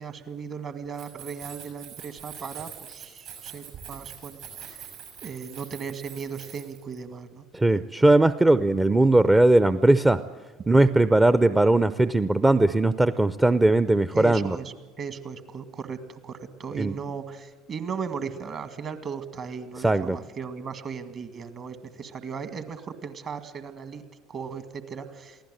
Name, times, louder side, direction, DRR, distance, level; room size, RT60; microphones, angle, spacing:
voice 1, 0.0-4.9 5.2-7.4 7.7-7.8 14.1-24.0 24.3-25.4, right 6 dB, 45° right, 11 dB, 2.0 m, -37 dB
Keys jangling, 0.9-7.0, right 8 dB, 65° right, 7.0 m, -44 dB
voice 2, 7.5-10.2 10.7-14.6 16.8-16.9 19.8-20.2, right 2 dB, 15° right, 14 dB, 0.6 m, -19 dB
23.0 x 16.0 x 7.8 m, 1.3 s
figure-of-eight pair, 65°, 0 cm